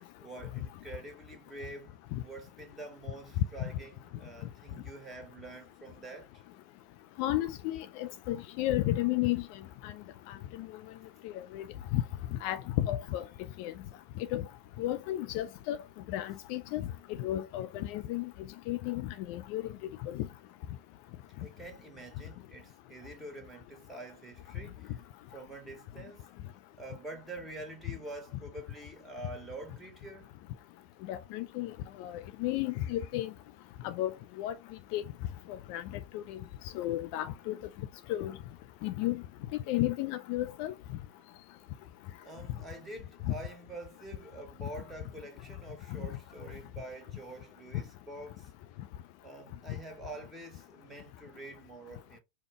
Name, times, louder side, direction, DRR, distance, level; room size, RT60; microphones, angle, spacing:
voice 1, 0.2-6.4 21.4-25.0 25.3-26.3 26.8-30.3 41.2-41.3 42.2-48.5 49.2-52.2, right 2 dB, 10° right, 1.6 m, -46 dB
voice 2, 7.2-9.4 9.8-9.9 10.3-10.7 11.2-11.7 11.9-12.0 12.4-13.2 13.6-13.7 14.3-14.4 14.8-15.8 16.1-16.8 17.2-18.3 18.7-19.7 20.0-20.3 31.1-31.7 32.0-33.3 33.8-34.1 34.4-34.5 34.9-35.0 35.5-35.8 36.1-36.4 36.7-37.6 38.1-38.4 38.8-39.2 39.7-40.7, left 14 dB, 45° left, 0.3 m, -33 dB
5.0 x 2.3 x 3.5 m
figure-of-eight pair, 90°, 0 cm